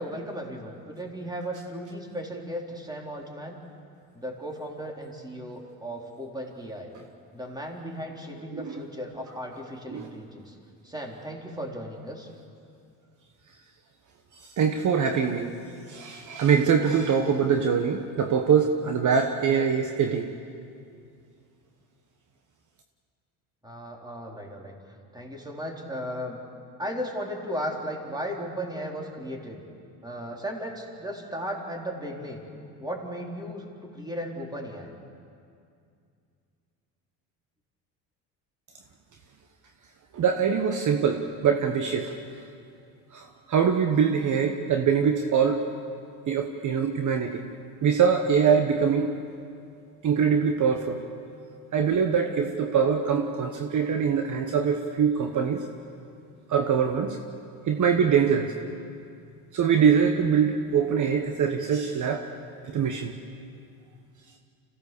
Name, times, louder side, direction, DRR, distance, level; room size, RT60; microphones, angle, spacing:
voice 1, 0.0-3.6 4.1-6.9 7.3-10.5 10.8-12.3 23.6-24.7 25.1-26.4 26.8-29.6 30.0-32.5 32.8-34.9, equal, 10° right, 0 dB, 3.8 m, -36 dB
voice 2, 14.6-15.5 15.9-20.3 40.1-42.1 43.1-45.6 46.3-47.4 47.8-49.1 50.0-51.0 51.7-55.6 56.5-57.2 57.7-58.5 59.5-62.2 62.7-63.1, right 7 dB, 50° right, 5 dB, 1.3 m, -23 dB
26.0 x 16.5 x 6.9 m, 2.4 s
supercardioid pair, 80°, 39 cm